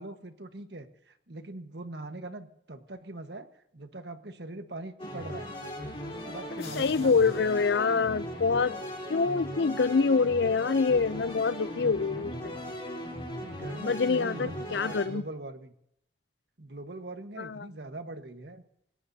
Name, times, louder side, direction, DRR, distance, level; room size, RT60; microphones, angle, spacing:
voice 1, 0.0-5.5 6.0-7.4 13.4-15.7 16.6-18.6, right 2 dB, 65° right, 1.5 m, -42 dB
sound 1, 5.0-15.1, equal, 30° left, 3.8 m, -38 dB
sound 2, 6.6-8.9, left 7 dB, 50° left, 3.1 m, -52 dB
voice 2, 6.7-8.8 9.1-12.6 13.8-15.2 17.4-17.7, left 4 dB, 75° left, 0.5 m, -26 dB
27.5 x 18.0 x 2.8 m
head